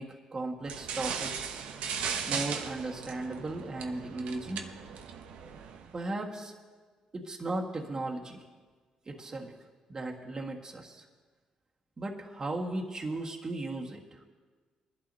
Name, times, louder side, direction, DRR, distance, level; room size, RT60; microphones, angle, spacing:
voice 1, 0.0-1.7 2.3-4.7 5.9-6.5 7.1-8.4 9.1-9.5 9.9-11.0 12.0-14.2, right 2 dB, 35° right, 0 dB, 1.7 m, -36 dB
sound 1, 0.6-5.9, right 6 dB, 75° right, 0.9 m, -37 dB
21.5 x 11.5 x 2.8 m, 1.4 s
supercardioid pair, 70°, 2 cm